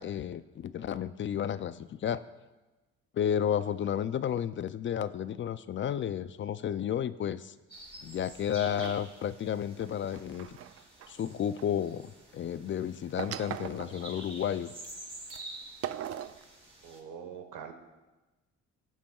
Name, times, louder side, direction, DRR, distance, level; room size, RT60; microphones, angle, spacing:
voice 1, 0.0-2.2 3.1-7.5 8.0-10.6 11.1-14.7, left 9 dB, 40° left, 15 dB, 0.4 m, -32 dB
sound 1, 7.7-17.0, right 1 dB, 20° right, 3.7 m, -49 dB
sound 2, 8.7-9.0 9.7-11.7 13.2-14.3 14.8-14.9 15.3-15.4 15.8-16.4, right 10 dB, 50° right, 0.4 m, -40 dB
voice 2, 16.8-17.7, right 7 dB, 90° right, 5 dB, 1.3 m, -43 dB
20.5 x 7.4 x 2.4 m, 1.1 s
cardioid pair, 90°, 30 cm